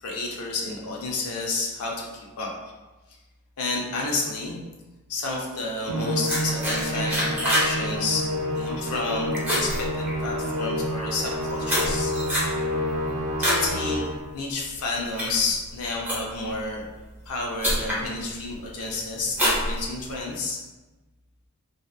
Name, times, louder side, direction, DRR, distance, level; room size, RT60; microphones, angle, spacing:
voice 1, 0.0-2.5 3.6-4.6 5.1-8.3 8.5-12.1 13.4-14.1 14.3-16.8 17.2-20.6, left 3 dB, 85° left, -1 dB, 0.5 m, -30 dB
Musical instrument, 5.9-14.3, equal, 85° right, 0.5 m, -29 dB
sound 1, 6.3-7.7 8.0-8.4 8.8-9.1 9.3-10.5 11.2-13.7 14.1-14.4 14.9-16.5 17.2-17.3 17.6-18.0 18.5-18.9 19.3-20.3, equal, 10° right, 0.7 m, -26 dB
2.7 x 2.0 x 2.2 m, 1.2 s
head